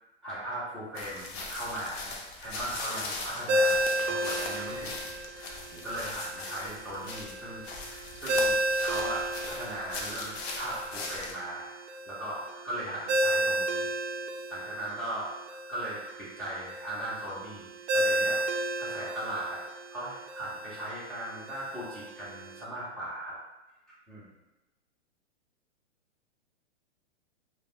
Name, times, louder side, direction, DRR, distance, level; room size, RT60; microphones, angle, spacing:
voice 1, 0.2-3.8 4.1-11.7 12.1-13.9 14.5-15.3 15.7-17.7 17.9-18.4 18.8-19.6 19.9-23.3 24.1-24.3, right 1 dB, ahead, -10 dB, 0.5 m, -38 dB
sound 1, 1.0-11.3, left 3 dB, 60° left, 0.6 m, -40 dB
Ringtone, 3.5-22.6, right 1 dB, 80° right, 0.5 m, -33 dB
3.1 x 2.2 x 2.4 m, 1.0 s
hypercardioid pair, 140°, 35 cm